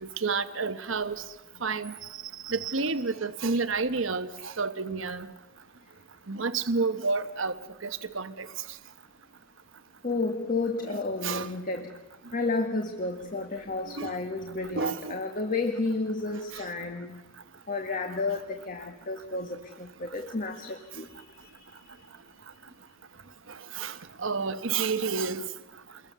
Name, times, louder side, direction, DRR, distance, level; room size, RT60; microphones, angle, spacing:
voice 1, 0.0-1.2 1.6-1.9 2.5-5.3 6.3-7.5 7.8-8.5 11.2-11.5 14.0-14.1 14.8-15.1 23.7-23.9 24.2-25.4, right 4 dB, 75° right, 1.1 m, -29 dB
voice 2, 10.0-12.0 12.3-17.2 17.7-21.1 21.4-21.6, left 3 dB, 45° left, 1.7 m, -31 dB
29.0 x 22.5 x 6.9 m
head